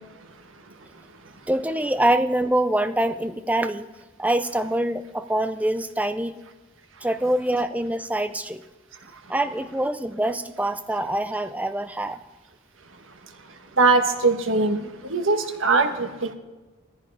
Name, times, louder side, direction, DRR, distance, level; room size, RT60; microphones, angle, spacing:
voice 1, 1.5-3.9 4.2-6.4 7.0-8.6 9.3-12.2, right 1 dB, 5° right, 9 dB, 0.6 m, -24 dB
voice 2, 13.8-16.3, right 3 dB, 70° right, 6 dB, 1.5 m, -21 dB
17.5 x 14.5 x 4.9 m, 1.2 s
head